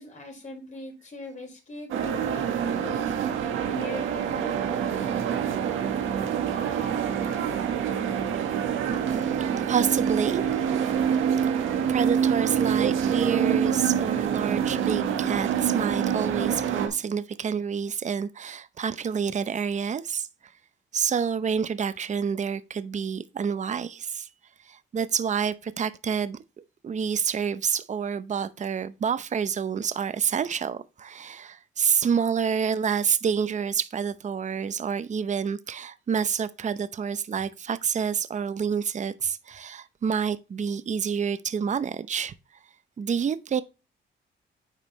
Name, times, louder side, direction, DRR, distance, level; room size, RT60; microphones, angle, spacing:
voice 1, 0.0-3.1 3.6-4.6 8.8-9.0 37.3-37.4, left 2 dB, 40° left, 5.0 m, -40 dB
sound 1, 1.9-16.9, right 8 dB, 85° right, 1.5 m, -26 dB
voice 2, 9.0-10.8 11.9-20.3 20.9-24.3 24.6-42.3 43.0-43.6, right 7 dB, 35° right, 0.7 m, -28 dB
9.3 x 5.4 x 3.2 m
cardioid pair, 90°, 20 cm